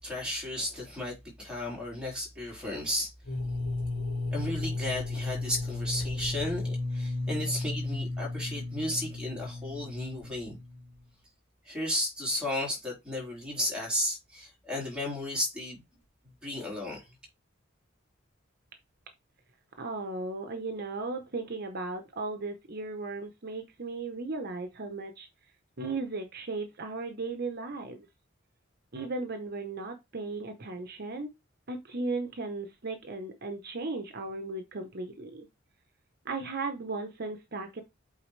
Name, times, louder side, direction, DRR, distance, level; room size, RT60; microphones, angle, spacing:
voice 1, 0.0-3.1 4.3-10.6 11.7-15.8 16.4-17.1, left 1 dB, 5° right, 3.8 m, -34 dB
sound 1, 3.2-11.0, left 2 dB, 70° left, 1.8 m, -34 dB
voice 2, 19.8-25.3 25.8-28.1 28.9-31.3 31.7-35.5 36.2-37.8, right 3 dB, 50° right, 0.9 m, -36 dB
8.4 x 4.1 x 3.2 m
head